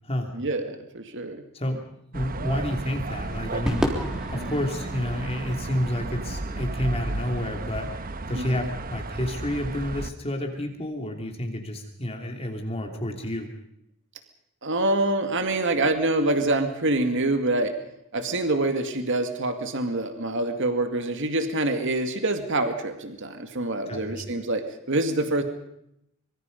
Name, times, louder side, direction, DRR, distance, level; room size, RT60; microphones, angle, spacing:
voice 1, 0.3-1.4 4.3-4.5 8.3-8.7 14.6-17.7 18.1-25.4, right 2 dB, 60° right, 7 dB, 2.2 m, -26 dB
voice 2, 2.1-3.8 4.3-7.9 8.3-13.5 23.9-24.2, left 1 dB, 30° left, 3 dB, 2.9 m, -30 dB
sound 1, 2.1-10.1, right 2 dB, 40° right, 1.1 m, -33 dB
Crowd / Fireworks, 3.7-8.1, equal, 5° right, 3.4 m, -34 dB
25.5 x 23.5 x 5.3 m, 0.77 s
head